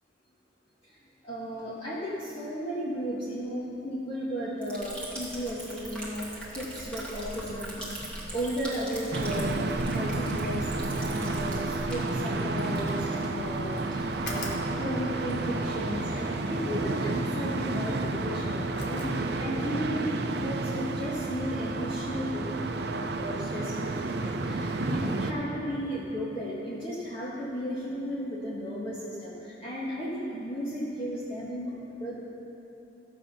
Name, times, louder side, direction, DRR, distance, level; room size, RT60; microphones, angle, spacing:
voice 1, 1.2-6.2 6.5-10.7 11.0-20.1 20.4-22.4 22.9-31.7 32.0-32.2, equal, 30° left, -9 dB, 1.7 m, -34 dB
Liquid, 4.6-17.1, right 1 dB, 5° left, 2.0 m, -41 dB
sound 1, 9.1-25.3, right 2 dB, 60° right, 0.6 m, -31 dB
sound 2, 14.1-19.8, left 1 dB, 65° left, 1.7 m, -43 dB
14.5 x 7.6 x 5.7 m, 3.0 s
head